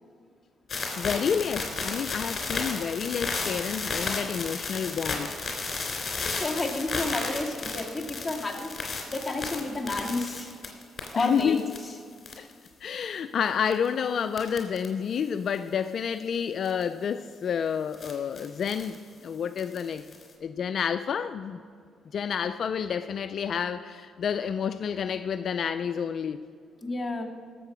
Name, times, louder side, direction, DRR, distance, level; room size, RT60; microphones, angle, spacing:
sound 1, 0.7-11.8 12.2-12.7 13.7-13.9 14.4-14.9 15.2-15.3 16.6-16.8 17.9-19.0 19.6-20.3, left 3 dB, 40° left, 3.2 m, -33 dB
voice 1, 1.0-5.3 11.2-11.6 12.4-12.5 12.8-20.1 20.4-21.6 22.1-26.5, left 7 dB, 55° left, 10 dB, 0.4 m, -29 dB
voice 2, 6.3-8.7 9.1-10.5 11.1-11.6 26.8-27.2, left 2 dB, 10° left, -2 dB, 2.2 m, -30 dB
18.5 x 7.6 x 6.1 m, 2.1 s
cardioid pair, 90°, 0 cm